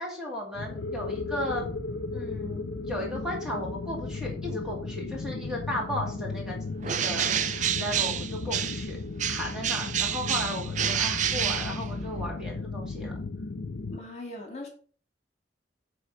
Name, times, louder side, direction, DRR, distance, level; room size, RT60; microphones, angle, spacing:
voice 1, 0.0-1.7 2.1-6.6 6.8-9.0 9.3-13.1, left 1 dB, 5° right, -2 dB, 2.5 m, -35 dB
sound 1, 0.5-14.0, left 3 dB, 80° left, 0.6 m, -35 dB
Bird, 6.8-8.9 9.2-12.3, right 9 dB, 45° right, 0.5 m, -29 dB
voice 2, 13.9-14.7, left 2 dB, 40° left, 1 dB, 2.5 m, -39 dB
9.9 x 3.6 x 6.1 m, 0.42 s
head